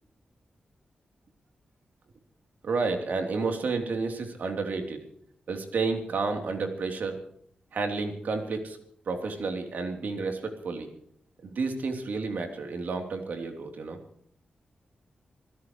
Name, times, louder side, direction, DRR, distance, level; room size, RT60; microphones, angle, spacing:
voice 1, 2.6-5.0 5.5-7.2 7.7-8.8 9.1-10.9 11.4-14.0, right 4 dB, 70° right, 4 dB, 3.5 m, -31 dB
26.5 x 16.5 x 3.2 m, 0.67 s
wide cardioid pair, 160°, 3 cm